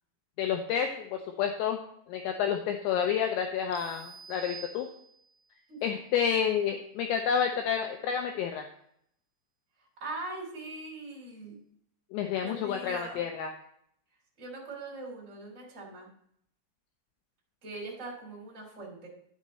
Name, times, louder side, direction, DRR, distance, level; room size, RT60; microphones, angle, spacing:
voice 1, 0.4-1.8 2.1-4.9 5.8-8.7 12.1-13.5, left 8 dB, 85° left, 4 dB, 2.6 m, -29 dB
sound 1, 3.7-5.4, right 5 dB, 80° right, 2.9 m, -47 dB
voice 2, 5.7-6.0 10.0-11.6 12.4-13.2 14.4-16.1 17.6-19.1, right 2 dB, 25° right, -2 dB, 2.0 m, -41 dB
10.0 x 6.4 x 4.2 m, 0.70 s
omnidirectional pair, 5.9 m